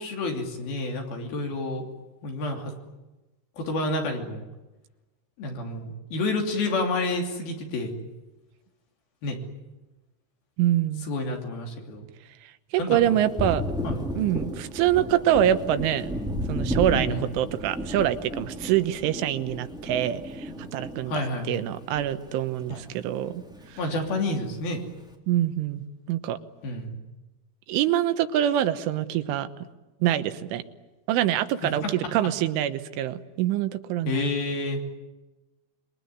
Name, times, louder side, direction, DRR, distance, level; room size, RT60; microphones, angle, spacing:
voice 1, 0.0-1.9 2.2-2.7 3.6-4.4 5.4-8.0 9.2-9.4 11.0-12.1 12.8-13.1 13.8-14.0 16.9-17.2 21.1-21.5 22.7-22.8 23.8-24.8 26.6-27.0 31.8-31.9 34.1-34.8, left 2 dB, 55° left, 2 dB, 4.6 m, -29 dB
voice 2, 10.6-11.1 12.7-13.6 14.2-16.1 16.5-21.2 21.5-23.4 25.3-25.8 26.1-26.4 27.7-29.5 30.0-30.6 31.1-34.3, right 12 dB, 85° right, 10 dB, 3.6 m, -25 dB
Thunder, 12.9-22.7 23.0-24.1, equal, ahead, 1.2 m, -33 dB
27.0 x 22.5 x 9.6 m, 1.1 s
omnidirectional pair, 5.4 m